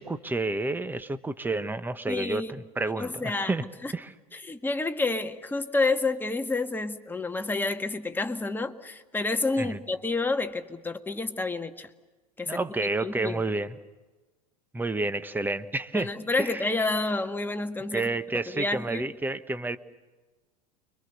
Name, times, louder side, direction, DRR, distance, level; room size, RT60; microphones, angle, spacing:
voice 1, 0.0-3.6 3.9-4.1 9.6-9.8 12.4-13.8 14.7-16.1 16.4-16.7 17.9-19.8, right 2 dB, 10° right, 11 dB, 1.3 m, -30 dB
voice 2, 2.1-2.5 3.0-3.5 3.8-3.9 4.3-11.9 12.4-12.6 13.0-13.4 15.9-18.1 18.5-19.0, left 3 dB, 10° left, 6 dB, 1.7 m, -29 dB
29.5 x 24.0 x 6.7 m, 1.2 s
hypercardioid pair, 85°, 19 cm